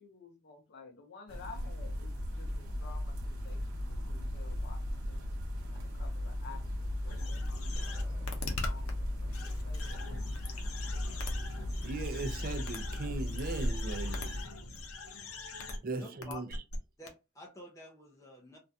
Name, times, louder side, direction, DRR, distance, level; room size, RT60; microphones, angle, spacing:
voice 1, 0.0-5.3 5.7-10.8, left 4 dB, 55° left, 0.6 m, -53 dB
sound 1, 1.3-14.5, left 1 dB, 80° right, 0.8 m, -37 dB
sound 2, 5.7-7.4 7.7-8.4 9.0-12.8, right 1 dB, 10° right, 0.9 m, -61 dB
sound 3, 7.1-8.9 9.3-15.8 16.2-16.8 17.1-17.2, left 2 dB, 90° left, 0.6 m, -41 dB
voice 2, 11.8-14.4 15.8-16.6, right 3 dB, 45° right, 0.4 m, -38 dB
voice 3, 15.9-16.4 17.0-18.6, left 1 dB, 15° left, 0.5 m, -49 dB
2.4 x 2.2 x 2.6 m
head